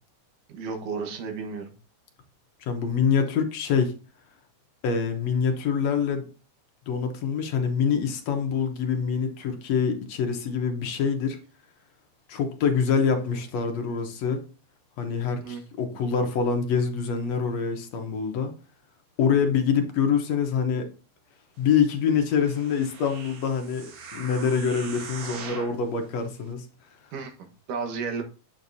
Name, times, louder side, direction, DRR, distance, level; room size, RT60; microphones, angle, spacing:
voice 1, 0.5-1.7 15.4-15.6 15.9-16.0 27.1-28.2, right 5 dB, 90° right, 2.9 m, -33 dB
voice 2, 2.6-3.9 4.8-6.3 6.9-11.4 12.3-14.4 15.0-18.5 19.2-20.9 21.6-23.9 24.1-26.7, left 6 dB, 65° left, 1.9 m, -25 dB
sound 1, 22.3-25.8 26.4-26.5, right 5 dB, 55° right, 1.5 m, -41 dB
8.9 x 7.0 x 2.7 m
omnidirectional pair, 3.6 m